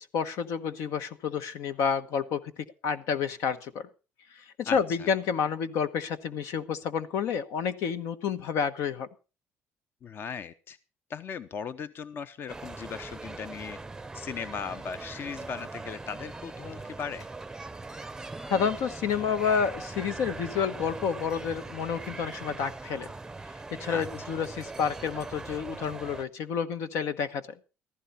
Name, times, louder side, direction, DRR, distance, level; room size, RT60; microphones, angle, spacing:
voice 1, 0.0-2.5 2.8-3.9 4.4-9.1 18.5-23.1 23.7-27.5, left 6 dB, 75° left, 11 dB, 1.2 m, -29 dB
voice 2, 4.7-5.1 10.0-10.8 11.1-13.8 14.1-17.3 23.9-24.1, left 6 dB, 45° left, 13 dB, 0.8 m, -38 dB
sound 1, 12.5-26.2, right 3 dB, 10° right, 0.6 m, -41 dB
15.5 x 14.5 x 4.2 m, 0.34 s
cardioid pair, 115°, 5 cm